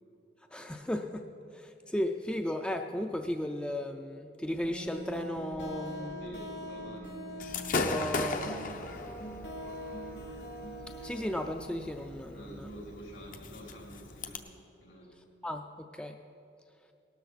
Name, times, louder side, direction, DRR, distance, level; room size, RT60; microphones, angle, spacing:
voice 1, 0.5-1.2 1.5-6.2 7.8-8.6 11.0-12.7 15.4-16.1, left 1 dB, 5° left, 5 dB, 0.4 m, -35 dB
sound 1, 4.6-12.2, equal, 70° left, 1.8 m, -43 dB
voice 2, 6.2-7.4 7.9-9.4 12.3-14.6 14.8-15.1, equal, 85° left, -2 dB, 3.5 m, -48 dB
Gunshot gunfire / Fireworks, 7.4-14.4, left 3 dB, 50° left, 0.7 m, -38 dB
18.0 x 12.5 x 4.1 m, 2.6 s
head